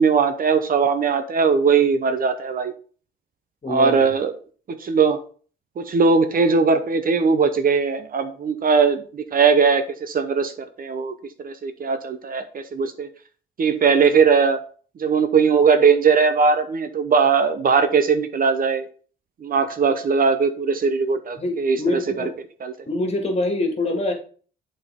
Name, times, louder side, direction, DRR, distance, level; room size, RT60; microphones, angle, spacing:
voice 1, 0.0-2.7 3.7-4.3 4.7-5.2 5.8-10.5 10.8-11.1 11.4-13.1 13.6-14.6 15.0-18.9 19.4-22.2 22.6-22.7, right 5 dB, 45° right, 9 dB, 0.8 m, -19 dB
voice 2, 3.6-4.0 21.4-22.3 22.9-24.1, left 2 dB, 30° left, 3 dB, 2.1 m, -24 dB
7.9 x 4.3 x 3.6 m, 0.42 s
cardioid pair, 90°, 20 cm